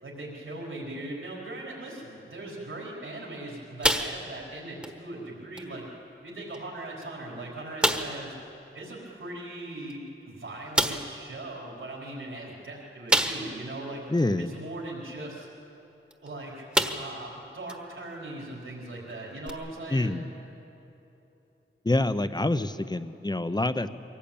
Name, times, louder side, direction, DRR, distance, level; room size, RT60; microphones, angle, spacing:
voice 1, 0.0-5.9 6.2-8.3 8.7-14.0 14.4-15.5 16.2-20.2, right 2 dB, 70° right, -4 dB, 4.2 m, -39 dB
sound 1, 3.8-4.5 4.8-5.0 5.6-5.7 6.5-6.6 7.0-7.1 7.8-8.2 9.9-10.0 10.8-11.2 13.1-13.7 14.2-14.3 16.1-16.3 16.7-17.2 17.7-17.8 19.5-19.6, equal, 5° right, 1.4 m, -26 dB
voice 2, 14.1-14.5 19.9-20.3 21.8-23.9, left 2 dB, 20° left, 12 dB, 0.8 m, -26 dB
23.5 x 17.0 x 8.7 m, 3.0 s
wide cardioid pair, 90°, 21 cm